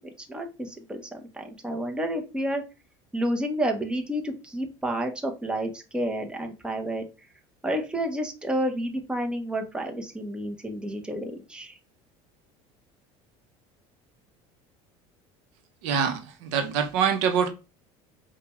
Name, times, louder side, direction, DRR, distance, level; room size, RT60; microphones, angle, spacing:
voice 1, 0.3-2.6 3.1-7.0 7.6-11.8, right 1 dB, 5° right, 0.8 m, -30 dB
voice 2, 15.8-17.5, right 7 dB, 80° right, 0.7 m, -25 dB
4.9 x 2.3 x 3.0 m
supercardioid pair, 100°, 14 cm